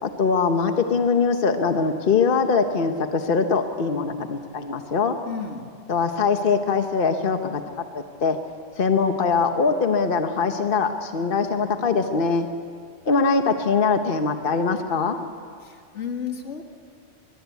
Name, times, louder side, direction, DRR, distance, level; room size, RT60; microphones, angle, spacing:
voice 1, 0.0-5.2 5.9-7.6 7.9-8.4 8.8-12.5 13.1-15.2, left 5 dB, 50° left, 7 dB, 1.2 m, -22 dB
voice 2, 5.3-5.7 15.6-16.6, left 7 dB, 80° left, 4 dB, 2.1 m, -32 dB
23.0 x 21.5 x 8.2 m, 2.2 s
omnidirectional pair, 1.2 m